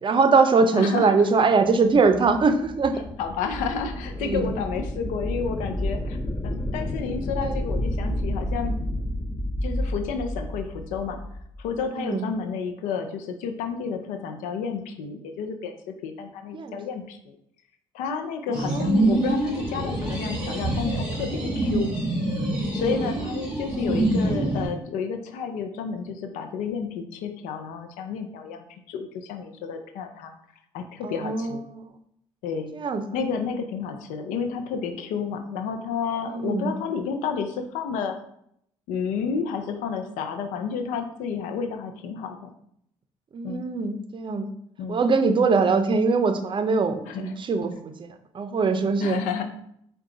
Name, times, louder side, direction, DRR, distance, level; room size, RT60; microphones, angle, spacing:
voice 1, 0.0-2.9 4.2-4.6 7.4-7.6 12.0-12.3 16.5-16.8 18.5-18.9 22.9-23.0 31.0-31.9 32.7-33.0 36.3-36.7 43.3-44.5 44.9-49.2, right 4 dB, 40° right, 8 dB, 0.5 m, -22 dB
voice 2, 0.7-1.2 3.2-8.8 9.6-11.2 11.6-15.7 16.0-17.3 17.9-21.9 22.7-30.3 30.7-31.6 32.4-32.7 33.1-38.1 38.9-42.5 43.4-43.7 44.8-45.0 47.1-47.3 49.0-49.4, left 6 dB, 85° left, 6 dB, 0.5 m, -31 dB
sound 1, 1.6-11.7, left 1 dB, 20° left, 0.6 m, -31 dB
sound 2, 18.5-24.7, right 2 dB, 10° right, 1.6 m, -25 dB
4.6 x 2.3 x 3.8 m, 0.72 s
supercardioid pair, 65°, 13 cm